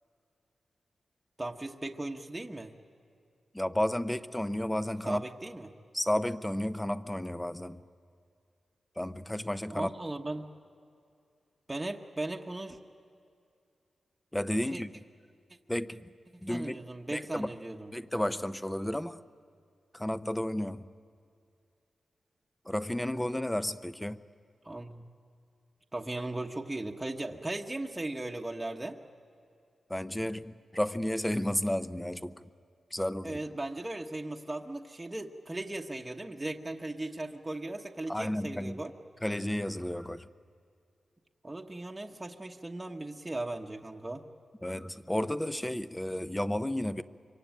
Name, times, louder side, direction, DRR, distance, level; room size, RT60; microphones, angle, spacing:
voice 1, 1.4-2.7 5.0-5.7 9.7-10.5 11.7-12.8 14.7-14.8 16.4-17.9 24.6-25.1 25.9-29.0 33.2-38.9 41.4-44.2, right 2 dB, 15° right, 1 dB, 1.1 m, -37 dB
voice 2, 3.5-5.2 5.9-7.8 9.0-9.9 14.3-14.9 15.7-16.1 16.4-16.8 17.1-17.5 17.9-19.2 19.9-20.9 22.7-24.2 29.9-32.4 32.9-33.4 38.1-38.8 39.2-40.3 44.6-47.0, left 1 dB, 10° left, 13 dB, 0.7 m, -32 dB
25.5 x 24.0 x 9.1 m, 2.4 s
wide cardioid pair, 125°, 0 cm